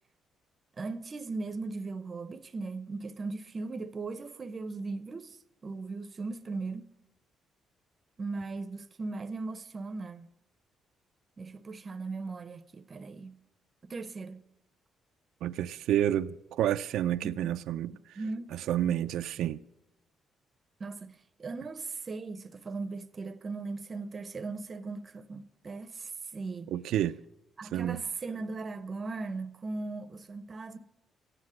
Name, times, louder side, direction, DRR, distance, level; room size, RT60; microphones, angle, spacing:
voice 1, 0.8-6.9 8.2-10.3 11.4-13.4 13.8-14.5 18.2-18.5 20.8-26.7 27.6-30.8, right 3 dB, 25° right, 0.6 m, -38 dB
voice 2, 15.4-18.2 18.5-19.6 26.7-27.2 27.7-28.0, right 11 dB, 80° right, 0.4 m, -29 dB
15.0 x 9.8 x 6.2 m
cardioid pair, 175°, 0 cm